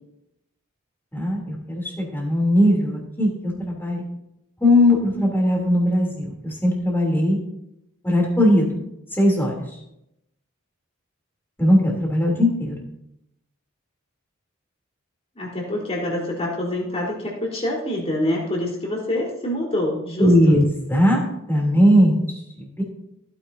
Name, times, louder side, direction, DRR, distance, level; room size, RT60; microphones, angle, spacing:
voice 1, 1.1-4.0 4.6-7.4 8.0-8.8 9.2-9.5 11.6-12.8 20.2-22.2 22.6-22.8, left 1 dB, 10° left, -2 dB, 3.3 m, -19 dB
voice 2, 15.4-20.6, left 1 dB, 30° left, -2 dB, 4.1 m, -26 dB
16.0 x 9.9 x 2.8 m, 0.82 s
head